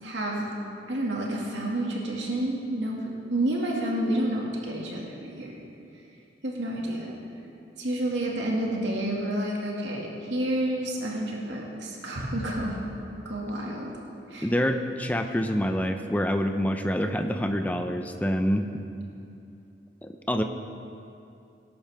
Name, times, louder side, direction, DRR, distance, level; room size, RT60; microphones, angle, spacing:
voice 1, 0.0-0.5 0.9-3.0 3.3-5.6 6.4-7.1 7.8-12.8 13.3-13.9 14.3-14.5, right 1 dB, 80° right, -2 dB, 2.1 m, -29 dB
voice 2, 14.4-18.7 20.0-20.4, equal, 10° left, 6 dB, 0.6 m, -26 dB
19.5 x 11.5 x 3.5 m, 2.6 s
head